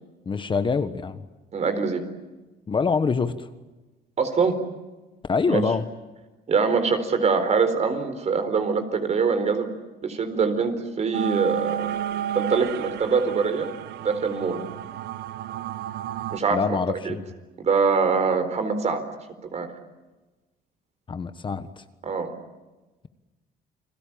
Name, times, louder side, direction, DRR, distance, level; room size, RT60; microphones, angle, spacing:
voice 1, 0.2-1.2 2.7-3.5 5.3-5.9 16.5-17.2 21.1-21.8, left 5 dB, 30° left, 10 dB, 1.4 m, -25 dB
voice 2, 1.5-2.0 4.2-4.6 5.5-5.6 6.5-9.7 10.0-11.9 12.3-13.7 14.0-14.6 16.3-17.2 17.6-19.0 19.5-19.7 22.0-22.3, right 5 dB, 40° right, 9 dB, 4.1 m, -23 dB
sound 1, 11.1-16.4, right 11 dB, 75° right, 1.0 m, -32 dB
30.0 x 21.0 x 8.7 m, 1.2 s
cardioid pair, 110°, 17 cm